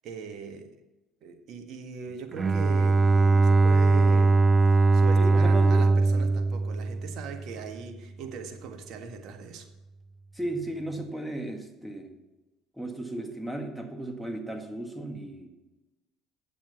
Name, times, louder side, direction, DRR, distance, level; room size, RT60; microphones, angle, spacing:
voice 1, 0.0-0.7 1.2-9.7, right 6 dB, 60° right, 5 dB, 1.5 m, -40 dB
Bowed string instrument, 2.3-7.6, right 3 dB, 30° right, 0.5 m, -21 dB
voice 2, 5.1-5.8 10.3-12.2 12.8-15.5, right 2 dB, 5° right, 4 dB, 2.0 m, -35 dB
9.1 x 7.3 x 5.7 m, 1.1 s
hypercardioid pair, 70°, 0 cm